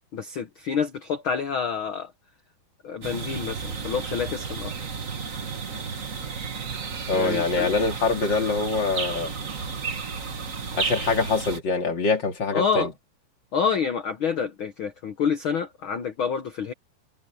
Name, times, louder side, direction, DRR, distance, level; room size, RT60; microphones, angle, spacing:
voice 1, 0.1-2.1 2.8-4.7 7.1-7.7 12.5-12.9 13.5-16.7, left 6 dB, 75° left, 1.1 m, -28 dB
sound 1, 3.0-11.6, right 5 dB, 45° right, 1.1 m, -33 dB
voice 2, 7.1-9.3 10.7-12.9, left 3 dB, 35° left, 2.6 m, -24 dB
omnidirectional pair, 4.1 m